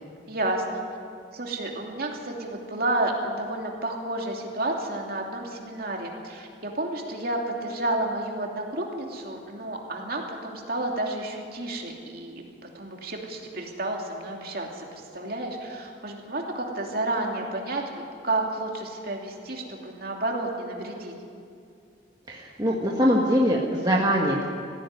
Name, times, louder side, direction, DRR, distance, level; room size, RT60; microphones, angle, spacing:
voice 1, 0.3-0.8 1.3-12.4 12.7-21.1, right 2 dB, 50° right, 0 dB, 2.8 m, -31 dB
voice 2, 22.3-24.4, equal, 20° right, -2 dB, 1.6 m, -22 dB
19.0 x 15.0 x 9.7 m, 2.3 s
head